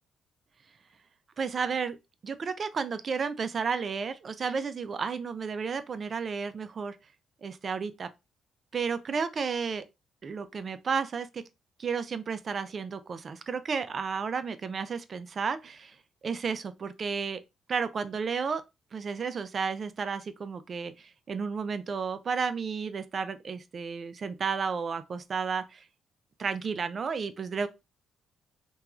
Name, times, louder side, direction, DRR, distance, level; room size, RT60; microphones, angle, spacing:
voice 1, 1.4-2.0 2.2-7.0 7.4-8.1 8.7-9.8 10.2-11.4 11.8-16.0 16.2-17.4 17.7-18.6 18.9-25.9 26.4-27.7, right 5 dB, 45° right, 0.3 m, -32 dB
2.9 x 2.2 x 2.3 m
cardioid pair, 90°, 0 cm